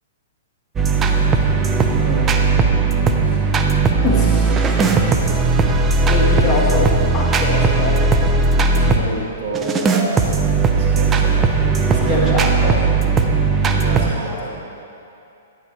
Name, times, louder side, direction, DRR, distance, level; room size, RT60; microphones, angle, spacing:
sound 1, 0.8-9.0 9.5-14.1, right 4 dB, 20° right, 0.7 m, -17 dB
voice 1, 2.0-2.6 4.0-5.0 6.0-6.8 7.1-8.0 12.1-12.8, left 3 dB, 25° left, -4 dB, 1.8 m, -24 dB
voice 2, 2.9-3.6 6.3-6.5 8.8-10.3 10.8-12.3 13.7-14.6, right 2 dB, 60° right, -4 dB, 2.2 m, -29 dB
11.0 x 9.2 x 3.4 m, 2.7 s
figure-of-eight pair, 115°, 0 cm